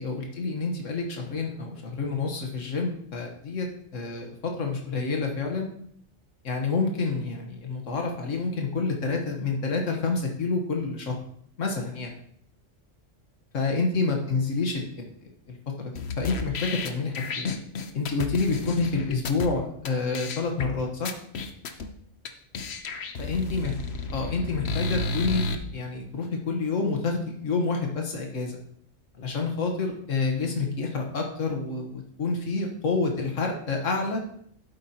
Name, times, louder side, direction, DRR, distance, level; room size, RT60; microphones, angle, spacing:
voice 1, 0.0-3.7 3.9-5.7 6.4-11.1 11.6-12.1 13.5-15.1 15.5-15.6 16.2-17.5 17.9-21.1 23.2-23.7 24.1-28.6 29.2-34.2, left 4 dB, 90° left, 2 dB, 1.7 m, -28 dB
sound 1, 16.0-19.5 19.9-20.0 20.1-20.7 21.1-21.9 22.3-22.4 22.5-25.6, left 3 dB, 60° left, 1.1 m, -32 dB
12.0 x 8.6 x 2.9 m, 0.66 s
omnidirectional pair, 1.3 m